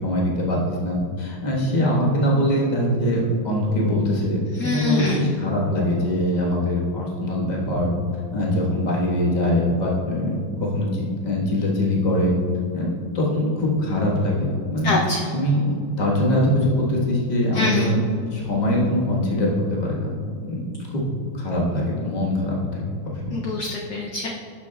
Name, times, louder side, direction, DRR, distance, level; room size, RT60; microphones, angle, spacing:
voice 1, 0.0-7.9 8.3-12.4 12.7-14.9 15.3-15.7 16.0-18.0 18.3-20.1 20.5-20.6 20.9-21.0 21.3-23.3, left 1 dB, 25° left, -4 dB, 1.2 m, -22 dB
voice 2, 4.6-5.3 14.8-15.3 17.5-17.9 23.3-24.3, left 3 dB, 70° left, 0 dB, 1.0 m, -24 dB
11.5 x 6.1 x 2.3 m, 2.4 s
omnidirectional pair, 2.3 m